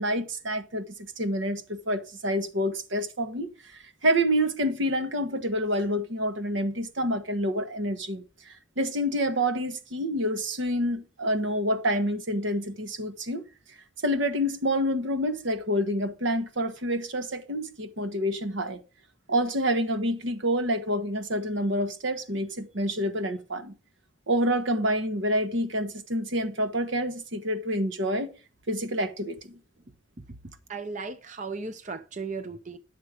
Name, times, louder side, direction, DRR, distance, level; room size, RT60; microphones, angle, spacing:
voice 1, 0.0-13.4 14.0-18.8 19.3-23.7 24.3-28.3 28.7-29.6, equal, 75° right, 1.3 m, -28 dB
voice 2, 30.7-32.8, right 4 dB, 40° right, 0.7 m, -36 dB
10.5 x 6.6 x 5.0 m
head